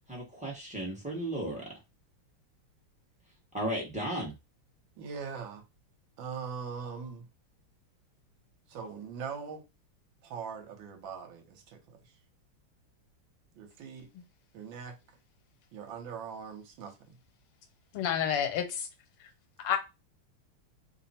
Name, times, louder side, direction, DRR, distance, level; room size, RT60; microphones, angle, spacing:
voice 1, 0.1-1.6 3.5-4.3, right 1 dB, 10° right, 0.4 m, -34 dB
voice 2, 5.0-5.6 6.2-7.3 8.7-9.6 10.2-12.0 13.6-14.1 14.5-15.0 15.7-17.0, right 6 dB, 65° right, 1.6 m, -41 dB
voice 3, 17.9-18.9 19.2-19.3 19.6-19.8, left 9 dB, 85° left, 1.7 m, -30 dB
3.7 x 2.1 x 4.1 m
omnidirectional pair, 2.4 m